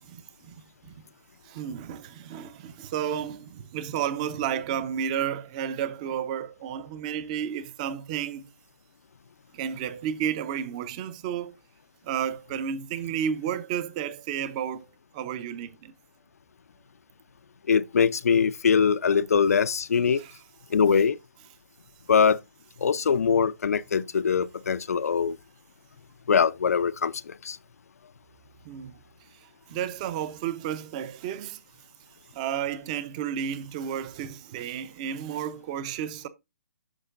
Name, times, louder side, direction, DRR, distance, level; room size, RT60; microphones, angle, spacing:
voice 1, 0.1-0.9 1.5-8.4 9.5-11.5 12.0-14.9 15.1-15.9 20.2-20.3 28.6-29.0 29.7-31.6 32.3-36.3, right 9 dB, 30° right, 0.7 m, -32 dB
voice 2, 17.7-20.2 20.7-21.2 22.1-22.4 22.8-25.4 26.3-27.6, left 6 dB, 75° left, 0.6 m, -22 dB
9.9 x 6.3 x 2.5 m
hypercardioid pair, 155°, 8 cm